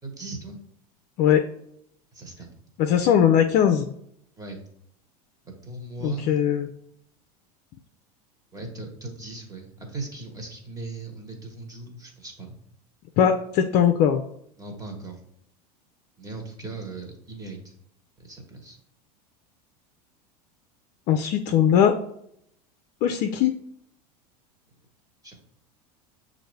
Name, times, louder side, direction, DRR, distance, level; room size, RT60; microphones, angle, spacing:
voice 1, 0.0-0.6 2.1-2.5 4.4-4.6 5.6-6.4 8.5-12.6 14.6-15.2 16.2-17.7 18.2-18.8 25.2-25.4, right 2 dB, 15° right, 2 dB, 1.2 m, -38 dB
voice 2, 2.8-3.9 6.0-6.7 13.2-14.2 21.1-22.0 23.0-23.5, left 9 dB, 50° left, 5 dB, 0.4 m, -20 dB
6.5 x 2.6 x 3.2 m, 0.72 s
hypercardioid pair, 95°, 20 cm